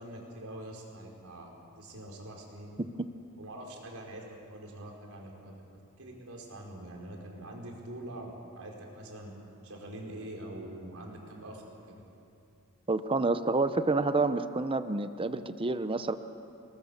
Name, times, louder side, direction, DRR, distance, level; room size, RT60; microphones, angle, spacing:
voice 1, 0.0-1.5 1.8-2.8 3.4-9.3 9.6-11.6 11.9-12.0, right 1 dB, 70° right, 0 dB, 5.0 m, -44 dB
voice 2, 12.9-16.1, right 3 dB, 25° right, 11 dB, 0.7 m, -29 dB
28.5 x 20.5 x 7.1 m, 2.7 s
head